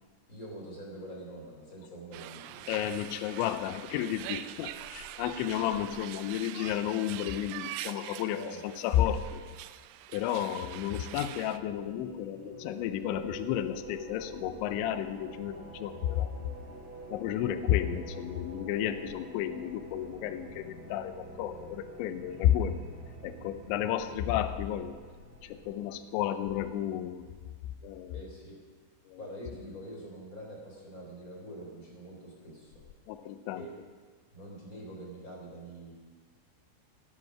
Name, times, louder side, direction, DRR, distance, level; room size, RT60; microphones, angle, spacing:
voice 1, 0.3-2.7 5.5-5.7 8.3-8.6 28.1-28.6 29.2-32.8 33.5-33.7 34.3-36.0, right 1 dB, 20° left, -2 dB, 2.9 m, -45 dB
sound 1, 2.1-11.6, right 13 dB, 85° right, 2.9 m, -44 dB
voice 2, 2.7-9.4 10.1-16.3 17.1-22.7 23.2-24.9 25.4-27.2 27.8-28.2 29.1-29.2 33.1-33.7, left 11 dB, 85° left, 10 dB, 2.7 m, -32 dB
sound 2, 11.1-26.5, equal, 30° right, 2.3 m, -47 dB
18.0 x 11.0 x 6.0 m, 1.5 s
omnidirectional pair, 6.0 m